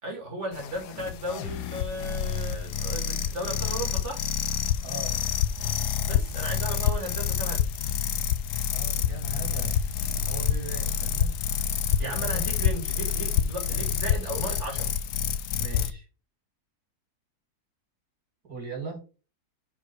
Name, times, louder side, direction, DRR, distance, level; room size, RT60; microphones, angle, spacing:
voice 1, 0.0-4.2 6.1-7.6 12.0-14.9, right 1 dB, 45° right, 2.7 m, -35 dB
sound 1, 0.5-15.9, left 8 dB, 85° left, 1.2 m, -28 dB
voice 2, 4.8-5.2 8.7-9.9 10.2-11.4 12.0-12.4 13.7-13.8 15.6-16.0 18.5-19.0, right 3 dB, 70° right, 3.3 m, -39 dB
5.4 x 4.7 x 6.0 m
omnidirectional pair, 1.7 m